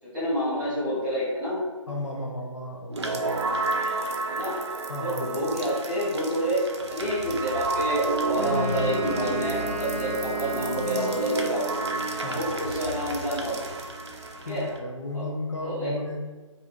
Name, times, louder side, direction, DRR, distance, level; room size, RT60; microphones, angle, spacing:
voice 1, 0.0-1.6 4.2-4.6 5.0-11.8 12.2-13.7 14.5-14.7 15.1-15.3 15.6-16.0, equal, 10° right, -11 dB, 1.4 m, -28 dB
voice 2, 1.9-3.3 4.9-5.4 12.2-12.5 14.4-16.2, left 1 dB, 60° left, 0 dB, 0.6 m, -34 dB
sound 1, 2.9-14.8, right 3 dB, 55° right, 0.5 m, -31 dB
Wind instrument woodwind instrument, 8.3-12.1, right 3 dB, 20° left, 1.5 m, -34 dB
4.1 x 2.6 x 2.2 m, 1.3 s
figure-of-eight pair, 155°, 17 cm